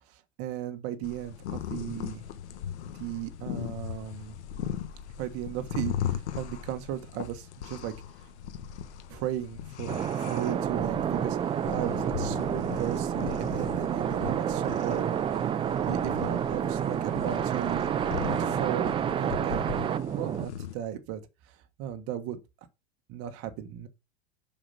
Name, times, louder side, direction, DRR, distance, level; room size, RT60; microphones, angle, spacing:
voice 1, 0.1-2.2 3.0-4.4 5.2-7.9 9.1-15.5 15.9-17.8 18.4-19.8 20.1-21.2 21.5-22.4 23.1-23.9, right 11 dB, 45° right, 1.4 m, -36 dB
sound 1, 1.0-20.7, left 8 dB, 85° left, 1.4 m, -38 dB
sound 2, 9.9-20.4, right 9 dB, 15° right, 0.4 m, -29 dB
7.0 x 5.5 x 5.6 m
supercardioid pair, 130°, 33 cm